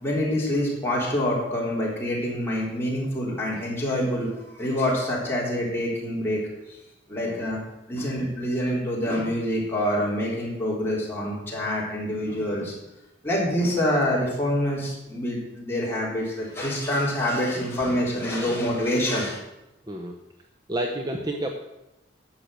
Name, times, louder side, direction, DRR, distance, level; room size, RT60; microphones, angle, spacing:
voice 1, 0.0-6.4 6.7-6.8 7.1-7.6 7.9-12.7 13.2-19.4, left 1 dB, 10° left, -5 dB, 3.5 m, -26 dB
voice 2, 19.9-20.2 20.7-21.5, right 1 dB, 20° right, 2 dB, 0.8 m, -30 dB
11.5 x 6.7 x 7.6 m, 0.93 s
head